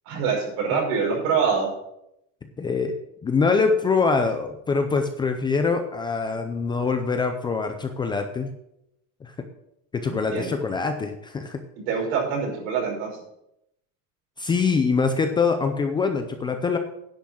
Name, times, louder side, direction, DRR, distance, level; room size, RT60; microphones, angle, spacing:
voice 1, 0.1-1.7 10.1-10.6 11.9-13.1, right 6 dB, 70° right, -1 dB, 5.4 m, -25 dB
voice 2, 2.6-2.9 3.2-8.5 9.2-9.3 9.9-11.6 14.4-16.8, left 4 dB, 15° left, 6 dB, 0.5 m, -24 dB
10.5 x 6.0 x 7.6 m, 0.81 s
cardioid pair, 175°, 34 cm